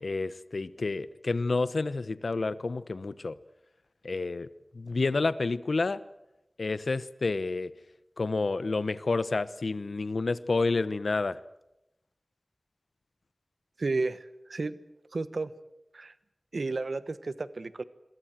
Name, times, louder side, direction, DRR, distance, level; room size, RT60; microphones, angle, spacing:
voice 1, 0.0-3.3 4.0-4.5 4.7-6.0 6.6-7.7 8.2-11.4, left 3 dB, 80° left, 16 dB, 0.9 m, -29 dB
voice 2, 13.8-14.8 15.1-15.5 15.9-16.1 16.5-17.8, right 3 dB, 80° right, 14 dB, 1.2 m, -32 dB
27.5 x 22.5 x 7.6 m, 0.88 s
wide cardioid pair, 65°, 0 cm